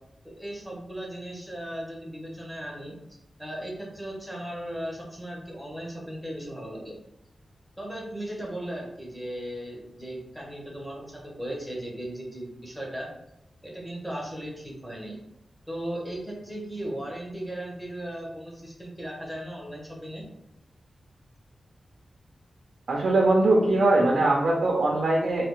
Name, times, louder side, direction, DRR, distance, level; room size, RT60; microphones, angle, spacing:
voice 1, 0.2-2.9 3.4-6.9 7.8-13.1 13.6-15.2 15.7-20.2, right 1 dB, 5° left, -3 dB, 0.8 m, -37 dB
voice 2, 22.9-25.5, right 2 dB, 65° right, -2 dB, 0.5 m, -21 dB
3.2 x 2.8 x 3.1 m, 0.82 s
wide cardioid pair, 180°, 0 cm